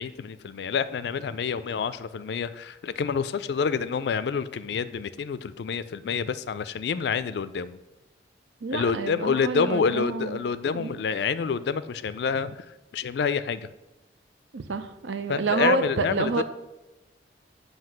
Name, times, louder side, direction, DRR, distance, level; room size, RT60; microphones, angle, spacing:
voice 1, 0.0-7.8 8.7-12.7 12.9-13.7 15.3-16.4, left 6 dB, 70° left, 14 dB, 0.3 m, -28 dB
voice 2, 8.6-10.4 10.7-10.9 14.5-16.4, right 4 dB, 85° right, 9 dB, 0.5 m, -28 dB
7.6 x 2.8 x 5.7 m, 1.0 s
head